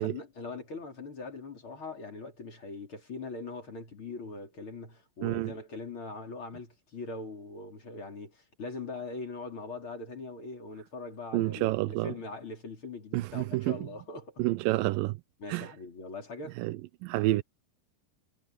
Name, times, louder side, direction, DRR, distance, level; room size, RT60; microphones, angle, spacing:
voice 1, 0.0-14.4 15.4-16.6, left 3 dB, 35° left, 4.6 m, -41 dB
voice 2, 5.2-5.5 11.3-12.1 13.1-13.8 14.4-15.2 15.5-15.7 16.6-17.4, right 18 dB, 85° right, 2.3 m, -29 dB
omnidirectional pair, 4.0 m